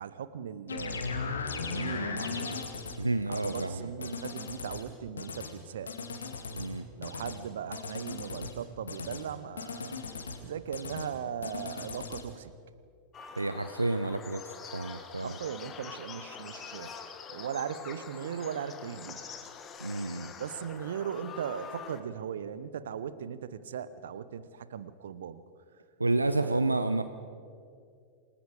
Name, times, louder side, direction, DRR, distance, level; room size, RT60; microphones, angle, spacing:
voice 1, 0.0-1.4 1.7-2.5 3.3-5.9 7.0-9.9 10.4-12.5 15.2-17.0 17.3-19.3 20.4-25.4 26.4-26.6, right 8 dB, 60° right, 15 dB, 0.9 m, -38 dB
sound 1, 0.7-3.0 3.3-3.7 4.0-4.8 5.2-5.5 5.9-6.7 7.0-7.4 7.7-8.5 8.9-9.2 9.6-10.4 10.7-11.1 11.4-12.2, left 4 dB, 70° left, 2.2 m, -37 dB
voice 2, 3.0-4.1 6.5-6.9 13.4-15.4 19.8-20.3 26.0-27.0, right 2 dB, 80° right, 11 dB, 0.7 m, -30 dB
sound 2, 13.1-22.0, left 6 dB, 25° left, 1.7 m, -45 dB
28.5 x 20.0 x 5.0 m, 2.3 s
figure-of-eight pair, 90°, 0 cm